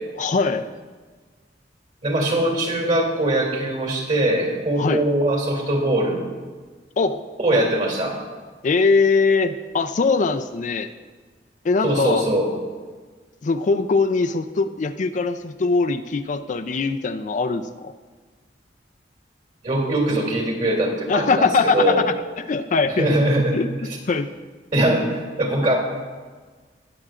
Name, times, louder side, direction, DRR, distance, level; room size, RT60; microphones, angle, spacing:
voice 1, 0.2-0.7 4.8-5.0 7.0-7.2 8.6-10.9 11.6-12.2 13.4-17.9 21.1-22.0 22.5-23.2 23.5-24.3, left 4 dB, 45° left, 9 dB, 0.4 m, -21 dB
voice 2, 2.0-6.2 7.4-8.2 11.8-12.5 19.6-22.0 23.0-23.6 24.7-25.8, right 1 dB, 45° right, 0 dB, 2.6 m, -21 dB
20.0 x 7.8 x 2.5 m, 1.4 s
head